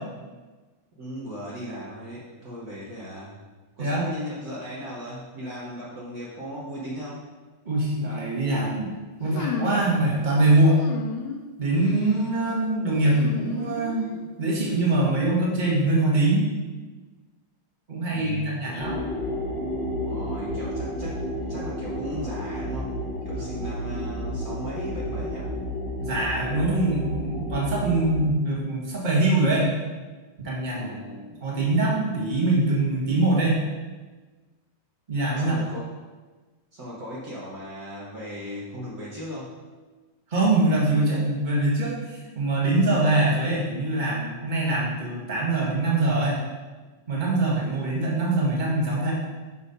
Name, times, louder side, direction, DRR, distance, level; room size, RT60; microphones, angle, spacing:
voice 1, 1.0-3.4 3.8-7.3 18.1-18.8 20.0-22.9 23.2-25.5 30.7-31.4 35.4-35.9 36.7-39.5, equal, 90° right, -7 dB, 0.8 m, -37 dB
voice 2, 7.6-8.9 9.2-10.8 11.6-14.1 14.4-16.4 17.9-19.0 23.5-23.7 26.0-29.7 30.4-30.9 31.4-33.6 35.1-35.5 40.3-46.4 47.1-49.1, right 2 dB, 30° right, -5 dB, 0.8 m, -23 dB
sound 1, 9.3-9.9 10.8-11.4 11.8-12.2 13.0-14.2, left 5 dB, 80° left, 2.0 m, -33 dB
sound 2, 18.8-28.2, equal, 45° left, 1.8 m, -31 dB
7.7 x 4.3 x 5.2 m, 1.3 s
omnidirectional pair, 3.6 m